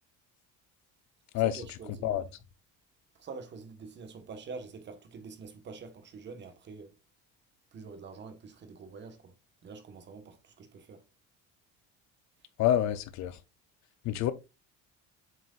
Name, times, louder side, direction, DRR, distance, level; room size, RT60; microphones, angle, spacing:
voice 1, 1.3-2.3 3.1-6.9 7.7-9.3 9.6-11.0, right 4 dB, 35° right, 1.4 m, -46 dB
voice 2, 12.6-13.4 14.0-14.3, left 11 dB, 55° left, 0.8 m, -27 dB
7.7 x 6.1 x 2.5 m
cardioid pair, 175°, 33 cm